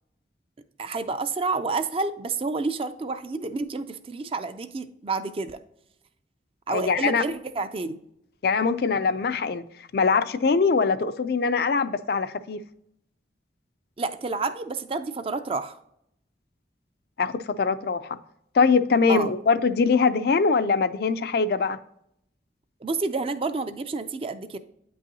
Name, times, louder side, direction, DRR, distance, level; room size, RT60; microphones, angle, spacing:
voice 1, 0.8-5.6 6.7-8.0 14.0-15.8 19.1-19.3 22.8-24.6, right 3 dB, 30° right, 11 dB, 0.4 m, -29 dB
voice 2, 6.7-7.2 8.4-9.6 9.9-12.6 17.2-18.2 18.5-21.8, left 5 dB, 55° left, 12 dB, 0.4 m, -22 dB
8.9 x 5.5 x 2.7 m, 0.76 s
head